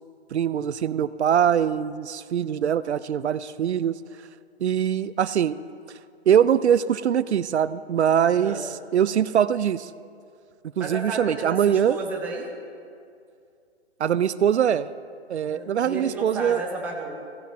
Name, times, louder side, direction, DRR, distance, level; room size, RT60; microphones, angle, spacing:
voice 1, 0.3-4.0 4.6-5.6 6.3-8.6 8.9-9.9 10.8-12.0 14.0-14.9 15.3-16.6, right 9 dB, 80° right, 16 dB, 0.5 m, -22 dB
voice 2, 8.2-8.6 10.8-12.5 15.5-17.2, right 3 dB, 5° right, 0 dB, 0.6 m, -32 dB
16.0 x 5.9 x 4.3 m, 2.3 s
figure-of-eight pair, 140°, 33 cm